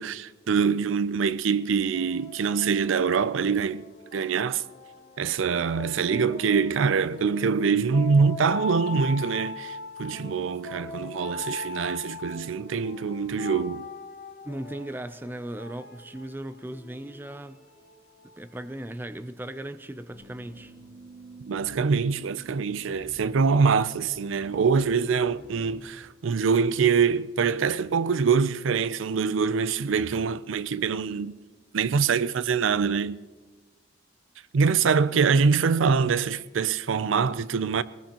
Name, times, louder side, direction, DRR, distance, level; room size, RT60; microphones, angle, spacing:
voice 1, 0.0-3.8 4.1-4.6 5.2-13.9 21.5-31.3 31.7-33.2 34.5-37.8, right 5 dB, 85° right, 0.5 m, -24 dB
sound 1, 1.4-18.8, left 3 dB, 50° left, 2.5 m, -41 dB
voice 2, 14.4-17.6 18.4-20.7, right 1 dB, 10° right, 0.4 m, -37 dB
sound 2, 20.1-25.8, right 1 dB, 55° right, 5.9 m, -49 dB
21.0 x 19.0 x 2.9 m
head